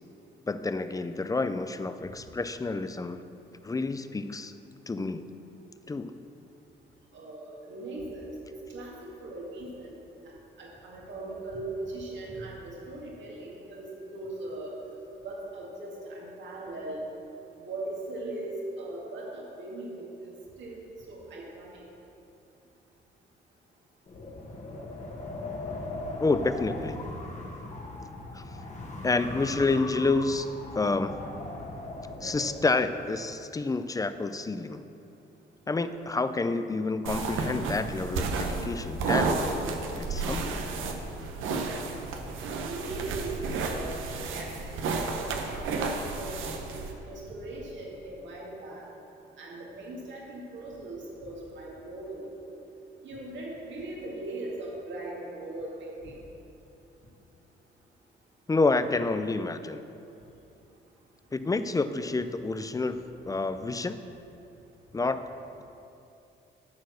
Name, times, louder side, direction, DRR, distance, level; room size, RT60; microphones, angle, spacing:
voice 1, 0.5-3.2 3.6-4.5 4.9-5.3 5.9-6.1 26.2-27.0 28.3-28.5 29.0-31.2 32.2-34.8 35.7-39.4 40.0-40.6 58.5-59.8 61.3-64.0 64.9-65.2, left 3 dB, 15° left, 11 dB, 0.4 m, -29 dB
voice 2, 7.1-9.9 10.2-10.3 10.6-14.7 15.2-17.0 17.7-20.3 20.6-20.8 21.1-21.7 42.4-43.4 43.6-46.4 46.7-48.8 49.4-52.3 53.0-56.1, right 2 dB, 70° right, -3 dB, 2.2 m, -39 dB
Wind, 24.1-32.8, left 2 dB, 35° left, 1.5 m, -39 dB
sound 1, 37.1-46.9, right 3 dB, 85° right, 1.0 m, -32 dB
13.0 x 4.6 x 6.4 m, 2.8 s
cardioid pair, 90°, 20 cm